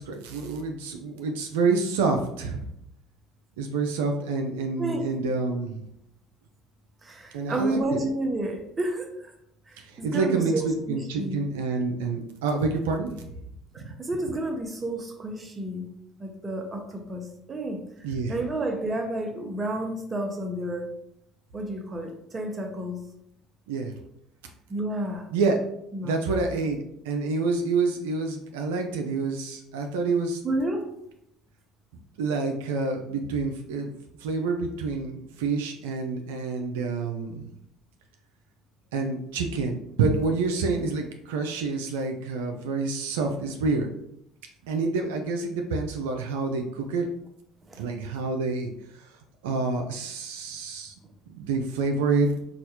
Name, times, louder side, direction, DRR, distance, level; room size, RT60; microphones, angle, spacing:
voice 1, 0.0-2.7 3.6-5.8 7.3-8.0 9.8-13.1 18.0-18.3 23.7-23.9 25.3-25.6 26.0-30.4 32.2-33.9 34.2-37.4 38.9-43.9 44.6-47.1 47.8-49.1 49.4-50.9 51.3-52.3, right 4 dB, 85° right, 3 dB, 0.4 m, -27 dB
voice 2, 7.0-9.3 9.7-11.4 13.7-15.9 16.2-20.9 21.5-23.0 24.7-25.3 25.9-26.2 30.4-31.0 47.7-47.9, right 1 dB, 30° right, 3 dB, 0.8 m, -31 dB
4.1 x 2.3 x 2.8 m, 0.76 s
hypercardioid pair, 70°, 0 cm